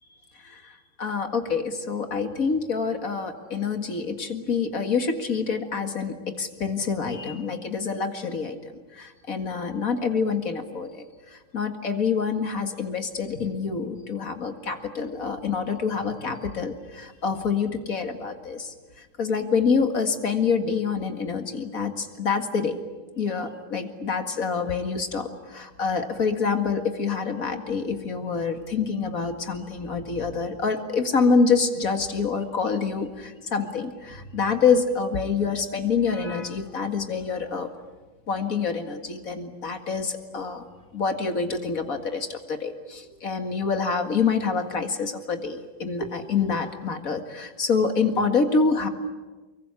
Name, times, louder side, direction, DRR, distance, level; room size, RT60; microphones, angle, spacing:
voice 1, 0.4-11.0 11.5-18.7 19.2-22.8 23.2-37.7 38.3-40.6 40.9-48.9, left 5 dB, 45° left, 7 dB, 2.3 m, -26 dB
24.5 x 23.0 x 9.7 m, 1.3 s
omnidirectional pair, 2.1 m